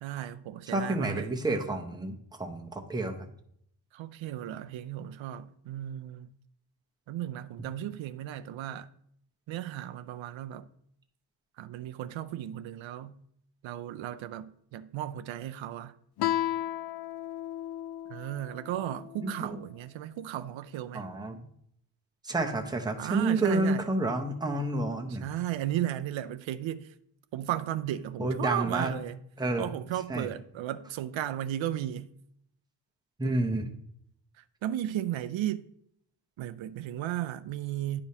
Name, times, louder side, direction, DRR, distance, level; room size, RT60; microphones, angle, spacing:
voice 1, 0.0-1.3 3.9-6.3 7.1-8.9 9.5-10.7 11.6-13.2 13.6-15.9 18.1-21.1 23.0-23.8 25.2-26.9 27.3-29.2 29.6-32.1 34.6-35.6 36.4-38.0, right 12 dB, 90° right, 0.5 m, -35 dB
voice 2, 0.7-3.3 19.2-19.6 20.9-21.4 22.2-25.3 28.2-28.9 29.4-29.7 30.1-30.3 33.2-33.7, right 2 dB, 10° right, 0.7 m, -30 dB
Guitar, 16.2-19.4, left 13 dB, 60° left, 0.5 m, -34 dB
10.5 x 5.0 x 2.8 m
wide cardioid pair, 140°, 45 cm